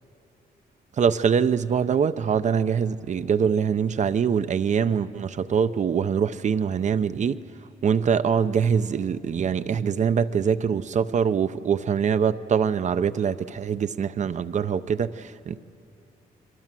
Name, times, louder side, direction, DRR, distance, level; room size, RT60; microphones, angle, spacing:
voice 1, 1.0-7.4 7.8-15.6, right 7 dB, 45° right, 13 dB, 0.7 m, -23 dB
29.5 x 23.0 x 7.5 m, 2.9 s
cardioid pair, 135°, 17 cm